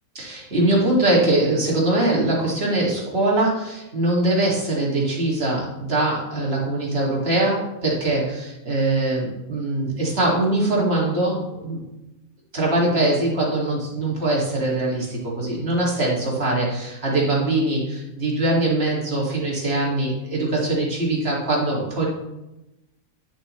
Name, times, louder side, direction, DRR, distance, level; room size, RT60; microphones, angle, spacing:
voice 1, 0.1-11.8 12.5-22.1, right 2 dB, 45° right, -3 dB, 2.5 m, -22 dB
10.5 x 7.5 x 3.2 m, 0.94 s
omnidirectional pair, 1.5 m